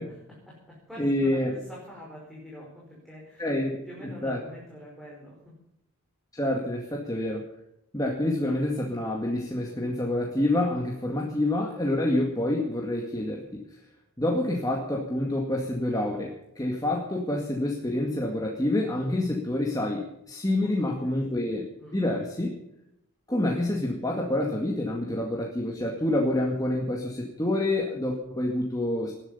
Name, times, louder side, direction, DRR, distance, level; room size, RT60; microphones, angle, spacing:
voice 1, 0.0-3.5 3.8-5.6 20.6-21.1 21.8-22.0, equal, ahead, -5 dB, 5.0 m, -46 dB
voice 2, 1.0-1.5 3.4-3.8 4.2-4.4 6.3-7.4 7.9-13.6 14.2-21.7 21.9-22.5 23.3-29.1, left 1 dB, 15° left, -1 dB, 2.0 m, -27 dB
19.5 x 11.5 x 5.6 m, 0.82 s
head